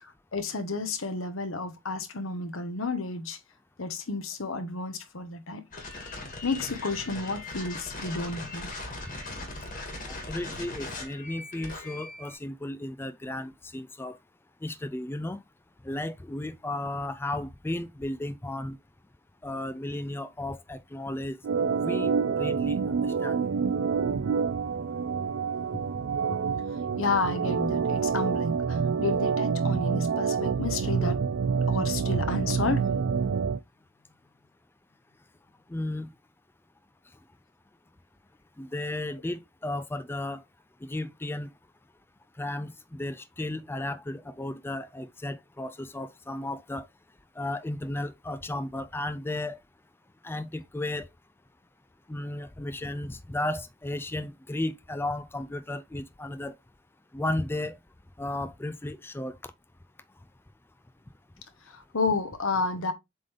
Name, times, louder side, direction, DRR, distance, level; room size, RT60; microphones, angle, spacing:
voice 1, 0.0-3.4 3.8-5.6 6.4-8.7 25.7-25.8 26.9-31.2 31.7-33.2 61.7-62.9, left 3 dB, 85° left, 1.2 m, -31 dB
sound 1, 5.7-12.3, left 2 dB, 40° left, 2.0 m, -39 dB
voice 2, 10.1-14.2 14.6-15.4 15.8-18.8 19.4-23.4 35.7-36.1 38.6-40.4 40.8-41.5 42.4-46.9 47.4-49.6 50.2-51.1 52.1-56.5 57.1-57.8 58.2-59.5, left 1 dB, 10° left, 0.3 m, -34 dB
Organ, 21.4-33.6, right 6 dB, 65° right, 0.4 m, -27 dB
7.5 x 3.7 x 3.3 m
head